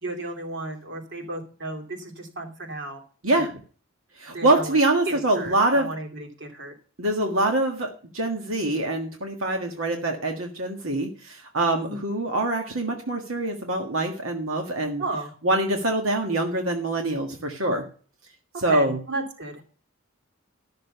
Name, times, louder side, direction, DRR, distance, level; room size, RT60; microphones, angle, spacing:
voice 1, 0.0-3.0 3.3-3.5 4.3-4.8 5.1-6.7 11.8-12.1 15.0-15.4 18.7-19.6, right 2 dB, 60° right, 3 dB, 2.6 m, -34 dB
voice 2, 4.2-5.9 7.0-15.0 15.4-17.8 18.6-19.0, right 2 dB, 85° right, 3 dB, 1.7 m, -24 dB
12.5 x 6.7 x 6.8 m, 0.40 s
head